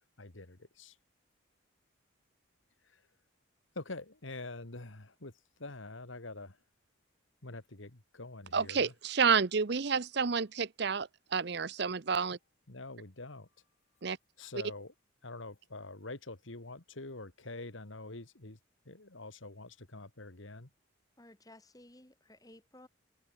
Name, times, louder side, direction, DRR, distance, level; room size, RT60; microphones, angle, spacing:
voice 1, 0.2-1.0 2.8-3.0 3.8-5.3 5.6-6.6 7.4-8.9 12.7-13.5 14.4-14.9 15.2-18.6 18.9-20.7, left 2 dB, 75° left, 2.1 m, -45 dB
voice 2, 8.5-12.4 14.0-14.2, right 5 dB, 55° right, 0.7 m, -30 dB
voice 3, 21.2-22.9, left 1 dB, 20° left, 2.1 m, -56 dB
head